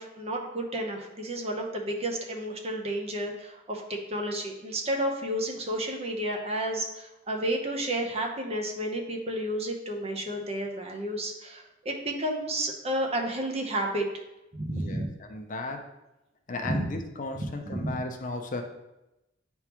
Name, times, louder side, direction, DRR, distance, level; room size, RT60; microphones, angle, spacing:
voice 1, 0.0-14.1 14.5-15.1 16.6-16.8 17.6-18.0, right 1 dB, 35° right, 2 dB, 0.9 m, -31 dB
voice 2, 14.7-15.9 16.5-18.6, left 2 dB, 45° left, 4 dB, 0.6 m, -35 dB
9.5 x 3.6 x 3.0 m, 0.93 s
head